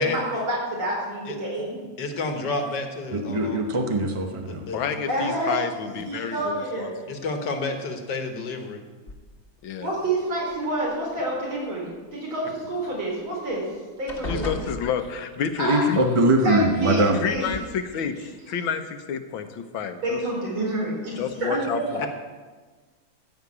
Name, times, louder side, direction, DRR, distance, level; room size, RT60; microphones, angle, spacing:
voice 1, 0.0-1.8 5.1-5.6 6.1-6.9 9.8-13.7 14.0-14.5 15.6-15.8 16.4-17.5 20.0-21.8, right 1 dB, 75° right, -3 dB, 4.9 m, -28 dB
voice 2, 2.0-3.6 4.5-4.8 7.1-8.8 14.3-14.4 22.0-22.1, left 3 dB, 60° left, 5 dB, 1.7 m, -30 dB
voice 3, 3.1-4.6 15.7-17.2, right 1 dB, 50° right, 3 dB, 0.3 m, -21 dB
voice 4, 4.6-6.9 9.6-9.9 14.3-16.0 17.2-18.2 18.5-20.2 21.2-22.1, left 7 dB, 75° left, 8 dB, 1.6 m, -29 dB
sound 1, 9.1-9.6 10.5-11.3 13.1-13.2 13.5-13.7 14.1-15.5 16.7-16.8 17.3-17.7, left 2 dB, 30° left, 1.4 m, -37 dB
14.5 x 5.9 x 8.5 m, 1.4 s
omnidirectional pair, 2.2 m